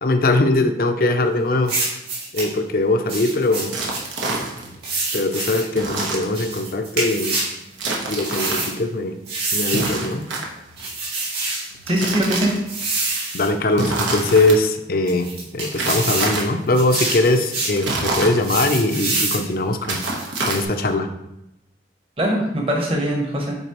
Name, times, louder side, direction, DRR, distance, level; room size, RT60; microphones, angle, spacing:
voice 1, 0.0-1.7 2.3-3.7 5.1-7.4 8.1-9.2 9.5-10.2 13.3-15.3 15.5-20.0 20.4-21.1, left 2 dB, 50° left, 7 dB, 0.5 m, -21 dB
sound 1, 1.7-2.5 3.1-4.0 4.8-5.7 6.3-7.5 8.2-8.7 9.3-10.0 10.8-11.7 12.7-13.5 13.9-14.5 15.1-16.4 16.7-17.8 18.4-19.4 20.0-20.6, right 3 dB, 60° right, 2.2 m, -26 dB
sound 2, 3.7-4.8 5.7-6.7 7.7-8.7 9.7-10.9 11.7-12.8 13.7-14.6 15.7-16.6 17.7-18.8 19.7-20.9, right 2 dB, 90° right, 1.1 m, -27 dB
voice 2, 11.9-12.5 22.2-23.5, equal, 30° right, 0 dB, 1.0 m, -21 dB
8.0 x 4.1 x 3.0 m, 0.89 s
head